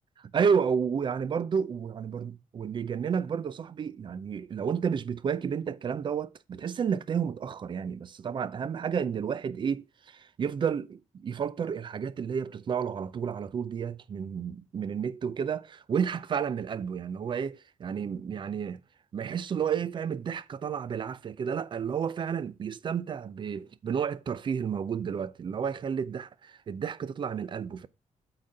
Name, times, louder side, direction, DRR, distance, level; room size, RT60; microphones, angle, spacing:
voice 1, 0.2-18.8 19.1-27.9, right 7 dB, 35° right, 0.5 m, -31 dB
8.4 x 4.0 x 6.4 m
wide cardioid pair, 175°, 13 cm